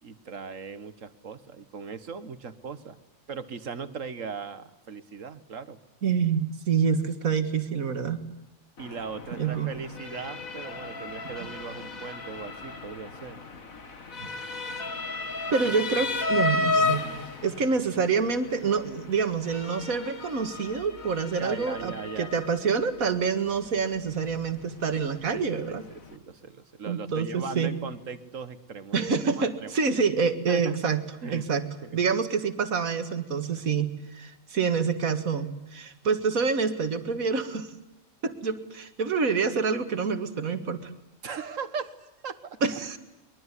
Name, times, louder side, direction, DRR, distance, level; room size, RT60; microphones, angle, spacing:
voice 1, 0.0-3.0 3.3-5.8 8.8-13.4 21.4-22.4 25.3-29.1 29.3-29.7 30.5-30.9 31.2-31.5 31.8-32.0 41.2-42.6, right 5 dB, 70° right, 12 dB, 1.8 m, -38 dB
voice 2, 6.0-8.2 9.4-9.7 14.2-14.3 15.5-17.1 17.4-25.8 26.9-27.7 28.9-31.0 31.3-31.6 31.9-37.7 38.2-40.9 42.6-43.0, right 5 dB, 85° right, 9 dB, 2.2 m, -27 dB
Motor vehicle (road) / Siren, 8.8-26.2, left 3 dB, 85° left, 2.4 m, -34 dB
24.0 x 22.0 x 9.9 m, 0.96 s
omnidirectional pair, 1.4 m